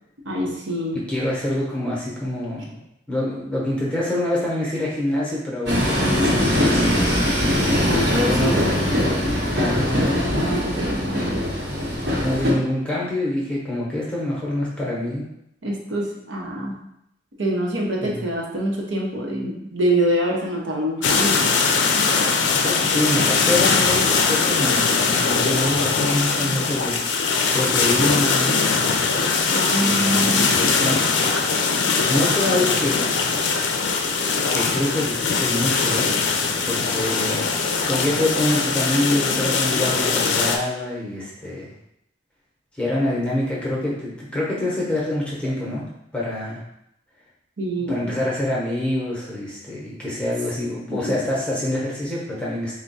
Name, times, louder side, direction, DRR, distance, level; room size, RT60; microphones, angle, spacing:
voice 1, 0.3-1.0 7.8-8.9 10.3-11.4 15.6-16.7 17.4-21.4 29.5-30.6 37.0-37.2 47.6-48.1 50.9-51.2, right 1 dB, 80° right, -2 dB, 0.8 m, -25 dB
voice 2, 0.9-2.8 3.1-7.1 7.9-8.9 9.5-10.4 10.8-11.1 12.0-15.3 18.0-18.2 22.5-27.0 27.5-28.7 29.8-31.0 32.1-33.1 34.5-36.1 36.6-37.4 37.9-41.7 42.8-45.8 46.1-46.6 47.8-52.8, left 1 dB, 5° left, -6 dB, 0.8 m, -26 dB
Train, 5.7-12.5, left 1 dB, 60° right, 1.1 m, -21 dB
sound 1, 21.0-40.6, left 4 dB, 70° left, 0.4 m, -21 dB
3.4 x 2.2 x 4.0 m, 0.81 s
head